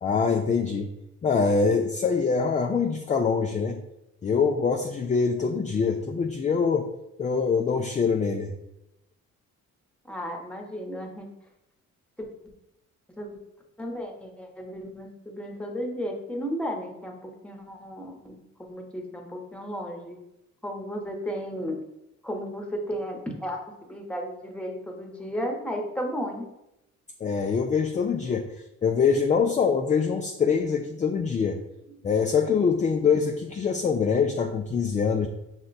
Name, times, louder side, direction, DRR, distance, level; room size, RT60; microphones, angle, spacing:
voice 1, 0.0-0.9 1.2-3.8 4.2-6.9 7.2-8.5 27.2-28.5 28.8-31.6 32.0-35.3, left 5 dB, 25° left, 4 dB, 0.3 m, -24 dB
voice 2, 10.0-11.3 12.2-12.3 13.2-13.4 13.8-20.2 20.6-21.8 22.2-26.5 31.9-32.0, equal, 5° left, 1 dB, 0.9 m, -34 dB
6.0 x 2.2 x 3.9 m, 0.88 s
cardioid pair, 90°, 30 cm